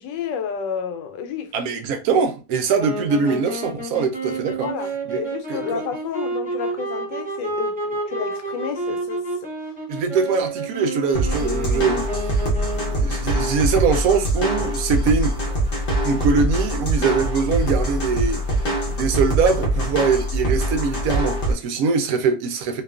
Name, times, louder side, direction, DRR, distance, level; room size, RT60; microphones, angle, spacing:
voice 1, 0.0-1.5 4.6-9.5, left 7 dB, 90° left, 1.2 m, -31 dB
voice 2, 1.5-4.7 5.1-5.2 5.5-5.8 9.9-12.4 12.9-15.4 16.0-18.4 18.9-22.8, right 5 dB, 70° right, 0.9 m, -22 dB
sound 1, 2.8-13.2, right 2 dB, 10° right, 0.5 m, -30 dB
sound 2, 11.1-21.5, right 1 dB, 60° left, 0.5 m, -23 dB
2.8 x 2.3 x 2.3 m
omnidirectional pair, 1.9 m